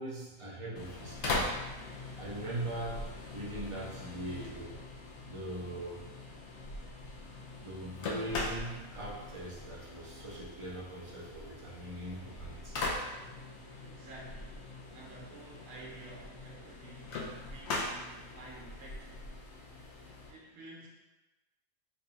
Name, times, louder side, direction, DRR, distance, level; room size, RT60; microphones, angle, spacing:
voice 1, 0.0-1.5 1.9-3.0 3.3-4.7 5.2-6.0 7.6-12.9, right 1 dB, 35° right, -5 dB, 0.5 m, -41 dB
sound 1, 0.8-20.3, left 2 dB, 65° left, 0.8 m, -41 dB
voice 2, 13.8-14.6 14.9-19.3 20.3-20.9, right 2 dB, 75° right, -3 dB, 1.0 m, -51 dB
3.3 x 2.3 x 3.9 m, 1.1 s
omnidirectional pair, 1.4 m